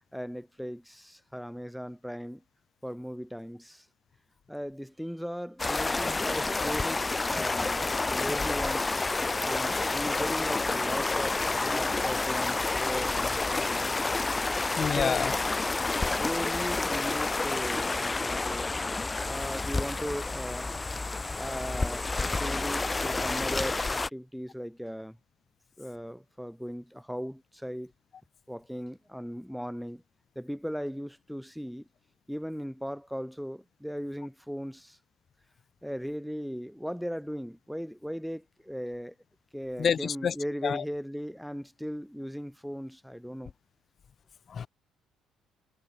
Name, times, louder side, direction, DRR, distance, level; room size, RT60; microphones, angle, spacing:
voice 1, 0.1-2.4 2.8-3.9 4.5-8.9 9.4-13.9 14.9-15.3 16.1-18.7 19.2-20.7 21.4-25.2 25.8-27.9 28.5-30.0 30.4-31.9 32.3-35.0 35.8-39.1 39.5-43.5, equal, ahead, 5.8 m, -38 dB
sound 1, 5.6-24.1, left 3 dB, 20° left, 0.7 m, -29 dB
voice 2, 14.8-15.3 39.8-40.3 40.6-40.8 44.5-44.7, left 7 dB, 45° left, 1.7 m, -28 dB
figure-of-eight pair, 50°, 0 cm